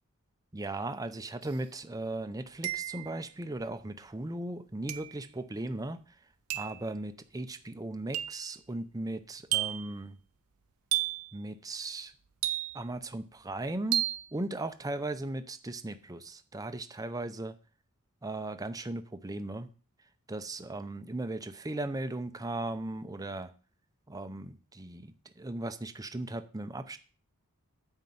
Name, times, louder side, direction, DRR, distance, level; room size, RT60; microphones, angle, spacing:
voice 1, 0.5-6.0 6.5-10.2 11.3-12.1 12.7-14.0 14.3-17.6 18.2-19.7 20.3-23.5 24.1-27.0, right 2 dB, 15° right, 9 dB, 0.6 m, -37 dB
sound 1, 1.5-1.6 2.6-3.2 4.9-5.2 6.5-6.8 8.1-8.5 9.5-9.9 10.9-11.3 12.4-13.0 13.9-14.3, right 14 dB, 85° right, 0.7 m, -32 dB
9.3 x 4.5 x 7.6 m, 0.37 s
head